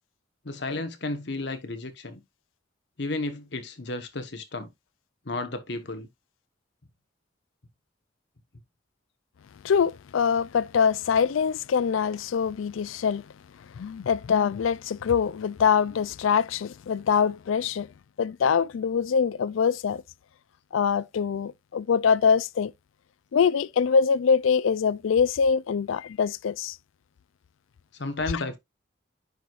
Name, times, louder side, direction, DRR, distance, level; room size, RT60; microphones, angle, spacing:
voice 1, 0.4-2.2 3.0-4.7 5.2-6.1 28.0-28.6, left 2 dB, 60° left, 1.2 m, -32 dB
voice 2, 9.6-13.2 13.8-17.9 18.2-20.0 20.7-22.7 23.3-26.8, left 6 dB, 80° left, 0.4 m, -24 dB
10.0 x 4.7 x 2.4 m
head